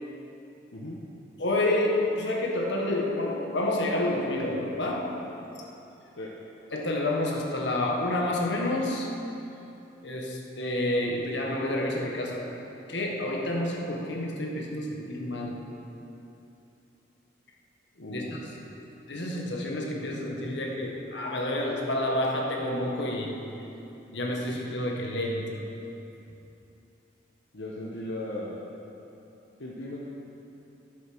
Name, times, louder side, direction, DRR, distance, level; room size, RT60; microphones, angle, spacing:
voice 1, 1.4-5.2 6.7-9.1 10.0-12.6 12.9-15.7 18.1-18.4 19.1-23.4 24.1-25.6, left 1 dB, 70° left, 0 dB, 1.5 m, -29 dB
voice 2, 18.0-18.4 27.5-28.6 29.6-30.0, left 1 dB, 90° left, -4 dB, 1.2 m, -37 dB
10.5 x 8.4 x 6.1 m, 2.9 s
head